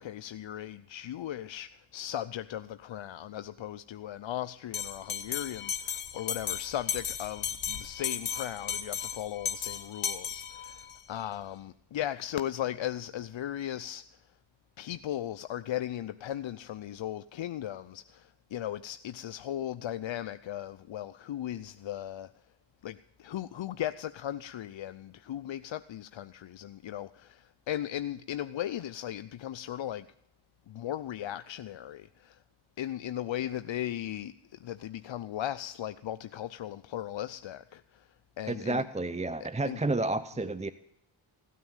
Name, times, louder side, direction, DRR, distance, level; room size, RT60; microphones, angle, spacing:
voice 1, 0.0-14.0 14.8-22.3 22.8-30.1 30.7-32.4 32.8-38.1 38.4-38.9 39.6-39.8, left 11 dB, 65° left, 0.6 m, -37 dB
Bell, 4.7-11.0, left 8 dB, 85° left, 1.1 m, -35 dB
voice 2, 38.5-40.7, right 2 dB, 15° right, 0.6 m, -31 dB
16.5 x 9.5 x 7.3 m
cardioid pair, 40°, 50 cm